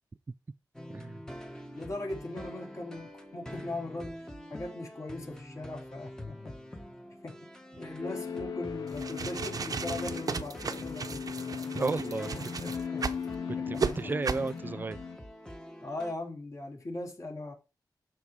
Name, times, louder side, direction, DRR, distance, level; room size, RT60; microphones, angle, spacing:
sound 1, 0.7-16.1, left 1 dB, 10° left, 1.3 m, -46 dB
voice 1, 0.9-1.2 11.7-12.3 12.6-12.7 13.7-15.0, right 3 dB, 25° right, 0.4 m, -33 dB
voice 2, 1.7-6.5 7.2-7.4 7.8-11.7 12.3-13.2 13.6-14.1 15.8-17.5, left 2 dB, 45° left, 3.6 m, -40 dB
sound 2, 8.0-15.2, left 6 dB, 60° left, 0.4 m, -38 dB
sound 3, 8.9-13.2 13.8-13.9 14.2-14.5, right 5 dB, 55° right, 0.9 m, -35 dB
12.5 x 4.8 x 4.8 m
wide cardioid pair, 170°, 8 cm